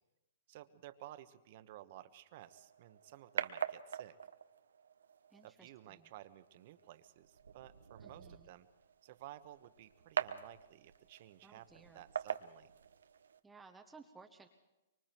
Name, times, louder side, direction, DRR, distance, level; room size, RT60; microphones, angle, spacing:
voice 1, 0.5-4.2 5.4-8.7 9.0-12.7, right 14 dB, 50° right, 11 dB, 1.3 m, -55 dB
sound 1, 2.4-13.4, right 7 dB, 85° right, 1.0 m, -45 dB
voice 2, 5.3-6.1 8.0-8.6 11.4-12.0 13.4-14.5, right 4 dB, 10° right, 4 dB, 1.1 m, -59 dB
25.0 x 24.0 x 4.6 m, 1.0 s
hypercardioid pair, 135°, 0 cm